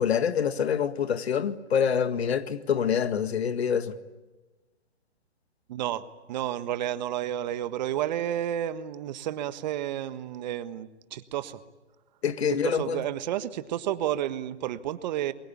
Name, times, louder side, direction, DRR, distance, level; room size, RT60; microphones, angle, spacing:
voice 1, 0.0-3.9 12.2-13.1, left 7 dB, 65° left, 1.9 m, -26 dB
voice 2, 5.7-11.6 12.6-15.3, right 11 dB, 40° right, 1.5 m, -31 dB
28.0 x 23.0 x 8.7 m
hypercardioid pair, 145°, 34 cm